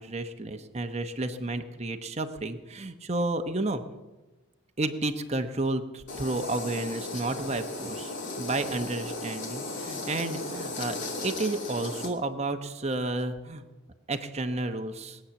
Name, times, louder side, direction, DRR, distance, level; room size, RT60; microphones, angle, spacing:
voice 1, 0.0-3.8 4.8-13.6 14.1-15.2, right 2 dB, 30° right, 7 dB, 0.9 m, -31 dB
sound 1, 6.1-12.1, left 2 dB, 60° left, 2.6 m, -36 dB
21.0 x 8.8 x 7.1 m, 1.1 s
head